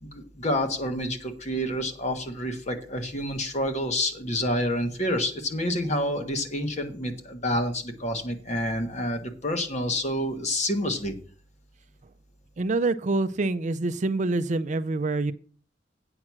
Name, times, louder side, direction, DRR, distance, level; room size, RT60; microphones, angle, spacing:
voice 1, 0.0-11.1, left 1 dB, 40° left, 5 dB, 1.4 m, -28 dB
voice 2, 12.6-15.3, right 3 dB, 40° right, 12 dB, 0.4 m, -26 dB
8.8 x 5.9 x 6.0 m, 0.42 s
head